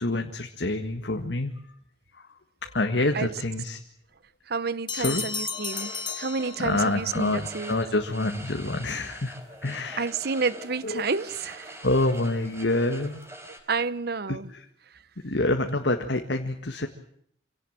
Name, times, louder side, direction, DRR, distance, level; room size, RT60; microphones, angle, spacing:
voice 1, 0.0-1.5 2.1-2.3 2.6-3.8 5.0-5.2 6.6-10.1 10.8-11.1 11.8-13.2 14.3-14.7 15.2-16.9, left 2 dB, 75° left, 1.8 m, -27 dB
voice 2, 4.5-7.8 10.0-11.8 13.7-14.5, right 4 dB, 60° right, 0.9 m, -30 dB
sound 1, 4.9-7.1, left 6 dB, 25° left, 1.5 m, -34 dB
sound 2, 5.5-13.6, right 1 dB, 15° right, 4.7 m, -44 dB
26.5 x 17.5 x 9.0 m
head